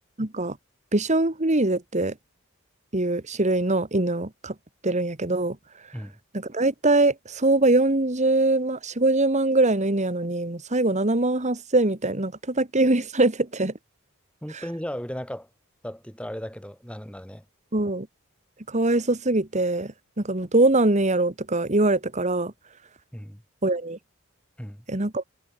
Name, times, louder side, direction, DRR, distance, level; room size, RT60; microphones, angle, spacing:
voice 1, 0.2-0.6 0.9-2.1 2.9-4.5 4.8-5.6 6.3-13.7 14.5-14.6 17.7-18.1 18.7-22.5 23.6-24.0 24.9-25.2, right 2 dB, 35° right, 1.8 m, -23 dB
voice 2, 14.4-15.5 15.8-17.4 23.1-23.4 24.6-24.8, equal, 5° left, 4.4 m, -36 dB
head